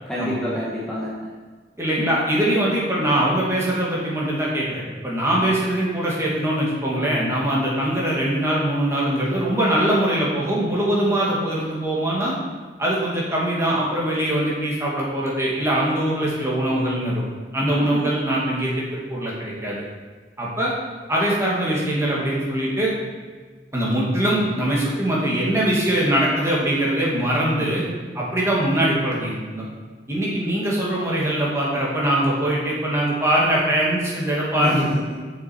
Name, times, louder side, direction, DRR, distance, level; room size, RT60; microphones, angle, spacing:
voice 1, 0.1-1.1 2.0-2.1 17.6-18.1 34.6-35.1, left 1 dB, 5° left, -8 dB, 1.4 m, -26 dB
voice 2, 1.8-12.3 12.8-17.2 17.5-19.8 20.4-20.7 21.1-22.9 23.7-27.8 28.1-29.6 30.1-34.8, right 1 dB, 15° right, -5 dB, 2.0 m, -22 dB
7.9 x 6.9 x 4.5 m, 1.4 s
head